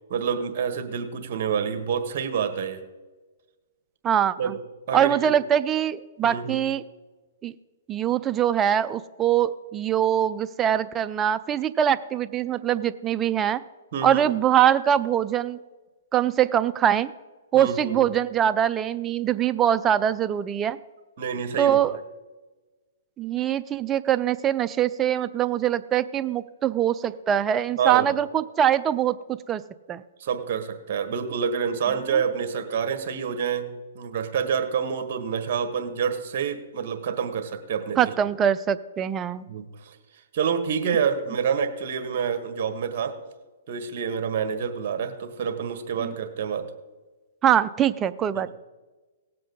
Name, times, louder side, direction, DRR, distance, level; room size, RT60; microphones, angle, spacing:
voice 1, 0.1-2.8 4.4-4.6 4.9-5.3 6.2-6.6 13.9-14.3 17.5-18.0 21.2-21.8 27.7-28.1 30.2-38.1 39.5-40.0 40.3-43.2 43.7-46.7 48.3-48.5, right 7 dB, 50° right, 8 dB, 1.5 m, -27 dB
voice 2, 4.0-4.6 4.9-6.8 7.4-7.5 7.9-13.6 14.0-15.6 16.1-17.1 17.5-20.8 21.6-21.9 23.2-29.6 29.9-30.0 32.1-32.2 38.0-39.4 46.0-46.1 47.4-48.5, right 10 dB, 20° right, 12 dB, 0.4 m, -23 dB
18.0 x 7.6 x 3.9 m, 1.3 s
hypercardioid pair, 135°, 0 cm